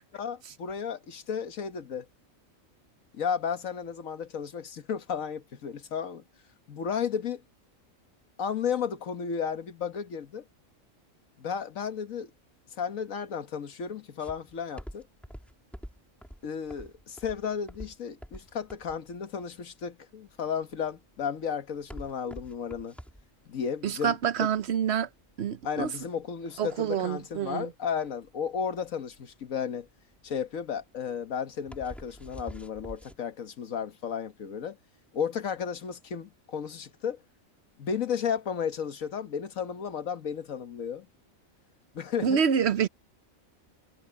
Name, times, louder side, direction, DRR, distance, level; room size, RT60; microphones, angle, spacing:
voice 1, 0.1-2.1 3.1-6.2 6.7-7.4 8.4-10.4 11.4-12.3 12.8-15.1 16.4-22.9 23.5-24.1 25.6-29.9 30.2-34.8 35.1-37.2 37.8-41.1 41.9-42.4, left 7 dB, 90° left, 1.7 m, -33 dB
sound 1, 14.2-33.2, equal, ahead, 3.3 m, -47 dB
voice 2, 23.8-25.1 25.4-25.9 26.6-27.7 42.2-42.9, right 7 dB, 60° right, 0.9 m, -27 dB
omnidirectional pair, 1.4 m